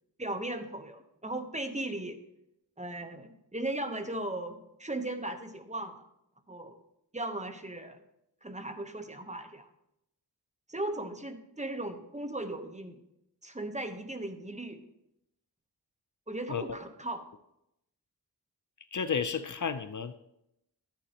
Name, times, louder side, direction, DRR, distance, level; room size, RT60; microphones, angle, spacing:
voice 1, 0.2-2.2 2.8-6.0 6.5-6.8 7.1-8.0 8.4-9.7 10.7-13.0 13.4-14.8 16.3-17.3, right 1 dB, 20° right, 7 dB, 0.9 m, -37 dB
voice 2, 18.9-20.2, left 6 dB, 50° left, 11 dB, 0.5 m, -32 dB
12.0 x 9.8 x 2.9 m, 0.81 s
wide cardioid pair, 75°, 40 cm